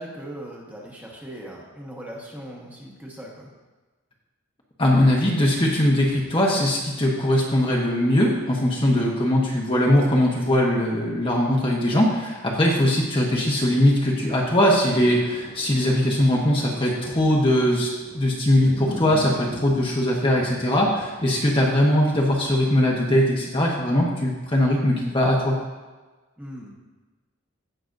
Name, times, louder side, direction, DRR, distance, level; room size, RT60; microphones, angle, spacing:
voice 1, 0.0-3.5 9.0-9.2 26.4-26.7, right 1 dB, 10° right, -3 dB, 1.3 m, -39 dB
voice 2, 4.8-25.6, left 1 dB, 25° left, -2 dB, 1.0 m, -21 dB
sound 1, 14.4-22.7 23.2-23.3, left 1 dB, 65° left, 2.5 m, -40 dB
16.5 x 6.0 x 2.6 m, 1.3 s
head